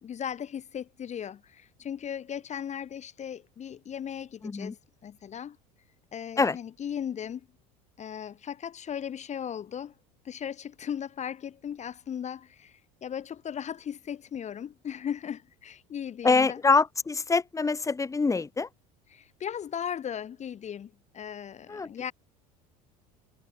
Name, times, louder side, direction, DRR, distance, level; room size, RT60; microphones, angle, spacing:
voice 1, 0.0-4.8 5.0-5.6 6.1-7.5 8.0-9.9 10.2-16.6 19.1-22.1, left 8 dB, 35° left, 2.1 m, -37 dB
voice 2, 4.4-4.7 6.4-6.6 16.2-18.7 21.7-21.9, left 4 dB, 15° left, 1.3 m, -25 dB
hypercardioid pair, 85°, 19 cm